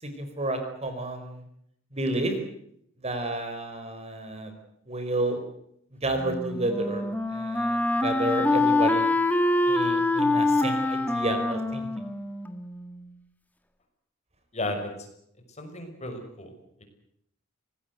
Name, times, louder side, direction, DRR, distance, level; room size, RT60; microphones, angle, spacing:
voice 1, 0.0-1.4 1.9-2.3 3.0-4.5 4.9-5.4 6.0-9.1 9.7-11.9, right 1 dB, 30° right, 7 dB, 4.6 m, -31 dB
Wind instrument woodwind instrument, 6.2-13.1, left 2 dB, 10° left, 2.1 m, -25 dB
voice 2, 14.5-14.9 15.6-16.5, left 1 dB, 35° left, 5 dB, 6.1 m, -33 dB
26.0 x 19.5 x 7.9 m, 0.71 s
head